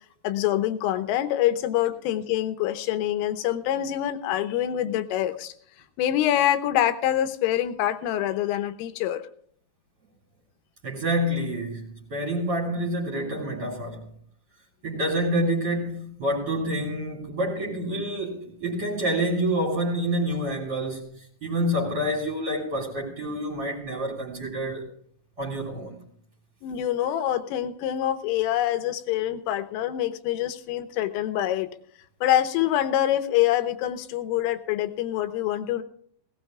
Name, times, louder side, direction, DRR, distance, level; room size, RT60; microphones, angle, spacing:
voice 1, 0.2-5.5 6.0-9.2 26.6-31.7 32.2-35.8, left 12 dB, 85° left, 3.6 m, -25 dB
voice 2, 10.8-14.0 14.8-24.9 25.4-26.0, right 1 dB, 25° right, 2.9 m, -28 dB
18.5 x 18.0 x 2.4 m
omnidirectional pair, 5.7 m